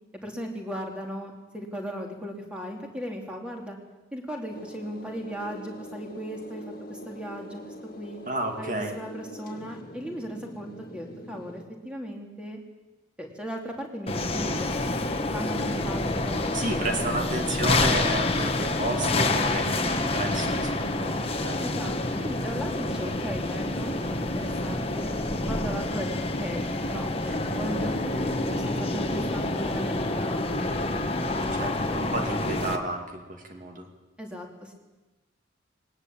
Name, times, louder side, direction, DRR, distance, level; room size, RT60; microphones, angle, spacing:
voice 1, 0.2-3.8 4.1-6.6 6.9-8.2 8.6-12.6 13.2-14.9 15.3-16.4 21.6-25.1 25.5-26.1 26.3-30.4 31.3-31.9 34.2-34.7, equal, 5° right, 1 dB, 3.0 m, -37 dB
sound 1, 4.5-11.6, equal, 45° left, 2.2 m, -44 dB
voice 2, 8.3-8.9 16.5-21.6 31.5-33.9, right 2 dB, 40° right, 3 dB, 2.4 m, -32 dB
sound 2, 14.1-32.8, left 2 dB, 30° left, 1.4 m, -28 dB
20.5 x 19.0 x 8.7 m, 1.2 s
head